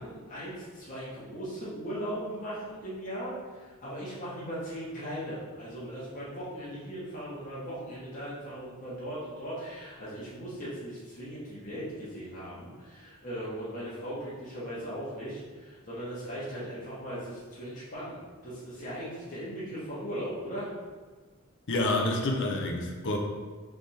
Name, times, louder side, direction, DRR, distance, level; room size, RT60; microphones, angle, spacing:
voice 1, 0.0-20.7, equal, 40° left, -9 dB, 1.1 m, -38 dB
voice 2, 21.7-23.2, left 2 dB, 60° left, 2 dB, 0.6 m, -28 dB
3.4 x 3.4 x 4.2 m, 1.4 s
head